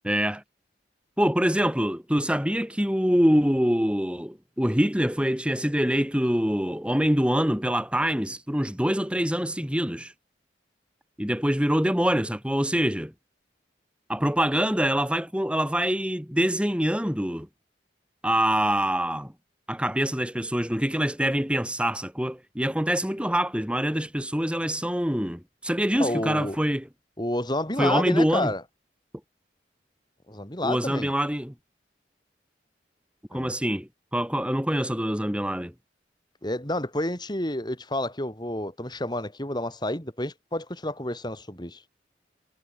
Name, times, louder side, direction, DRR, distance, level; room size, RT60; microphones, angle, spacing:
voice 1, 0.0-0.4 1.2-10.1 11.2-13.1 14.1-17.5 18.2-19.3 19.7-26.9 27.8-28.5 30.6-31.5 33.3-35.7, equal, 5° right, 4.5 m, -25 dB
voice 2, 26.0-26.6 27.2-28.6 30.3-31.1 33.3-33.6 36.4-41.8, left 1 dB, 25° left, 6.2 m, -30 dB
head